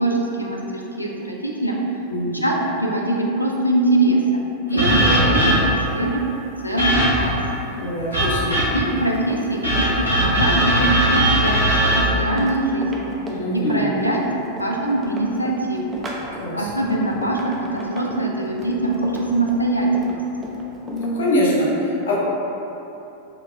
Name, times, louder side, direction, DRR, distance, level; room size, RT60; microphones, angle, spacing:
voice 1, 0.0-1.8 2.4-4.4 4.7-6.2 6.6-7.4 8.7-13.1 13.5-14.2 14.6-15.8 16.5-20.1, right 2 dB, 90° left, -2 dB, 0.3 m, -22 dB
voice 2, 2.1-2.5 5.0-5.2 7.8-8.6 13.4-13.8 16.4-16.7 20.9-22.2, equal, 65° left, -6 dB, 0.7 m, -23 dB
sound 1, 4.8-5.9 6.8-7.4 8.1-8.9 9.6-12.0, right 1 dB, 85° right, 0.8 m, -19 dB
Run, 9.0-21.1, right 1 dB, 20° right, 0.4 m, -35 dB
3.7 x 2.2 x 2.4 m, 3.0 s
figure-of-eight pair, 90°, 0 cm